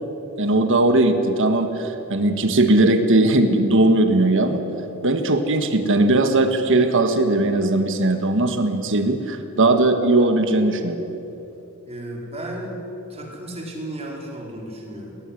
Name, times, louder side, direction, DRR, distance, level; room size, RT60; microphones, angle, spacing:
voice 1, 0.4-4.6 5.0-11.0, right 2 dB, 60° right, 7 dB, 1.6 m, -19 dB
voice 2, 11.8-15.2, right 1 dB, 30° right, -1 dB, 4.7 m, -34 dB
21.5 x 19.0 x 9.9 m, 3.0 s
head